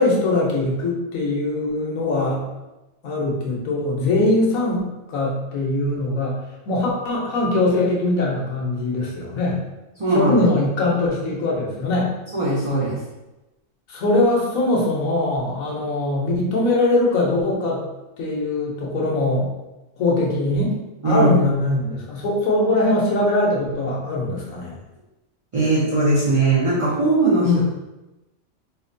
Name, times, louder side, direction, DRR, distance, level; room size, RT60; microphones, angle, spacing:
voice 1, 0.0-2.4 3.0-6.4 6.7-9.6 10.1-12.1 13.9-17.8 18.2-19.5 20.0-20.7 21.0-24.8 27.4-27.6, left 2 dB, 90° left, -3 dB, 1.2 m, -21 dB
voice 2, 10.0-10.4 12.3-13.0 21.0-21.4 25.5-27.5, right 2 dB, 40° right, -8 dB, 0.4 m, -19 dB
4.4 x 2.1 x 2.6 m, 1.0 s
omnidirectional pair, 1.4 m